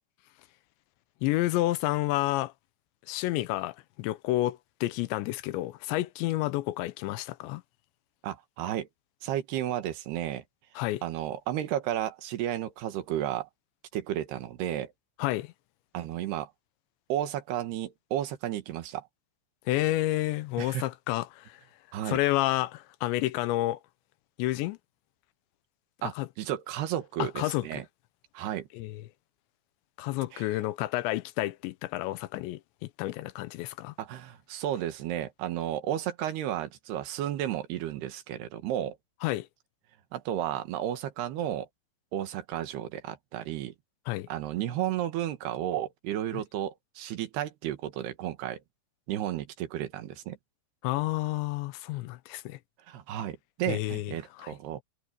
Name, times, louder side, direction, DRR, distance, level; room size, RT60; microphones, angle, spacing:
voice 1, 1.2-2.5 3.1-7.6 10.8-11.0 15.2-15.5 19.7-21.6 22.1-23.8 24.4-24.8 26.0-26.3 27.2-27.8 28.7-29.1 30.0-33.9 39.2-39.5 44.1-44.3 46.3-46.4 50.8-52.6 53.7-54.5, left 17 dB, 90° left, 3.1 m, -30 dB
voice 2, 8.2-8.9 9.2-10.4 11.0-13.5 13.9-14.9 15.9-16.5 17.1-19.1 20.6-20.8 21.9-22.2 26.0-27.9 28.4-28.7 30.3-30.4 34.0-39.0 40.1-41.7 42.1-43.7 44.3-48.6 49.1-50.4 52.9-54.8, right 12 dB, 70° right, 3.4 m, -33 dB
omnidirectional pair, 5.0 m